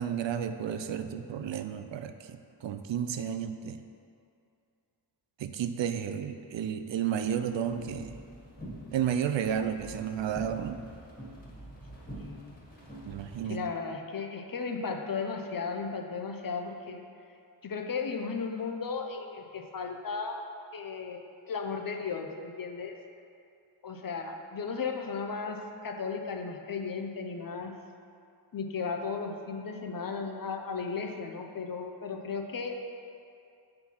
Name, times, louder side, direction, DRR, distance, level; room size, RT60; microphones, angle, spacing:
voice 1, 0.0-3.8 5.4-8.2 8.9-10.8 13.1-13.6, right 8 dB, 80° right, 9 dB, 0.5 m, -32 dB
sound 1, 7.3-13.4, equal, 20° left, 1.6 m, -46 dB
voice 2, 12.2-12.6 13.5-17.0 17.6-20.4 20.7-23.0 23.8-27.8 28.5-33.0, left 5 dB, 50° left, 4 dB, 0.7 m, -35 dB
7.7 x 4.5 x 5.6 m, 2.5 s
wide cardioid pair, 135°, 44 cm